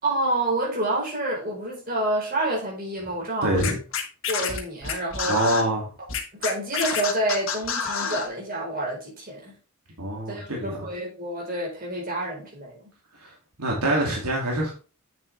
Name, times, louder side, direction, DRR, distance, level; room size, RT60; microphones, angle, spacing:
voice 1, 0.0-3.8 4.3-5.4 6.3-9.5 10.3-12.8, right 1 dB, 40° right, 4.6 m, -28 dB
voice 2, 3.4-3.8 5.3-5.9 10.0-10.7 13.2-14.7, right 1 dB, 85° right, 2.4 m, -25 dB
Scratching (performance technique), 3.6-5.6 6.1-8.3, left 6 dB, 60° left, 1.5 m, -28 dB
8.5 x 6.7 x 3.3 m
head